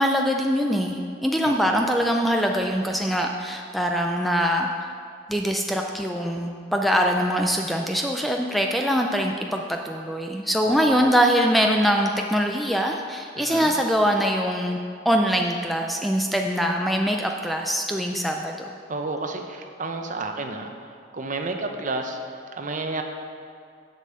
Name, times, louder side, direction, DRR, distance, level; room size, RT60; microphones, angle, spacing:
voice 1, 0.0-4.7 5.3-14.8 15.1-18.7, equal, ahead, 2 dB, 0.4 m, -23 dB
voice 2, 1.4-1.9 10.6-11.1 13.4-13.7 18.9-20.7 21.1-23.0, right 2 dB, 45° right, 4 dB, 0.8 m, -31 dB
7.6 x 5.5 x 7.5 m, 2.3 s
head